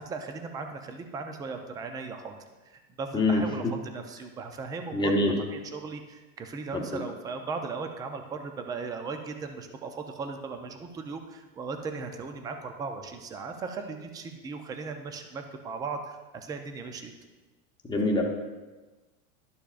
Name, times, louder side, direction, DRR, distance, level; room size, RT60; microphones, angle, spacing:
voice 1, 0.0-2.3 2.7-17.1, right 4 dB, 10° right, 6 dB, 0.3 m, -37 dB
voice 2, 3.1-3.7 4.9-5.4 6.7-7.0 17.8-18.2, left 2 dB, 10° left, 1 dB, 0.9 m, -25 dB
11.5 x 6.8 x 2.4 m, 1.2 s
supercardioid pair, 130°, 40 cm